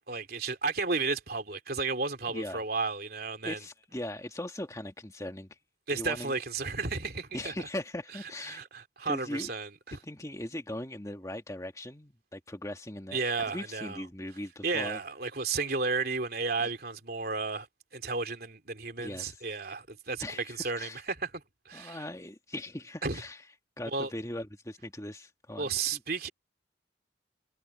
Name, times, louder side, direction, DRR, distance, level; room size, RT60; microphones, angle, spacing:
voice 1, 0.1-3.6 5.9-7.5 8.5-10.0 13.1-14.0 14.6-17.7 17.9-21.3 21.6-22.0 23.0-23.2 23.9-24.1 25.6-26.3, right 4 dB, 55° right, 3.2 m, -33 dB
voice 2, 2.3-2.6 3.4-5.6 5.9-6.4 7.3-8.6 9.0-9.5 10.0-15.0 16.6-16.7 19.0-19.4 20.2-21.0 21.7-23.4 23.8-26.0, left 1 dB, 15° left, 1.7 m, -39 dB
head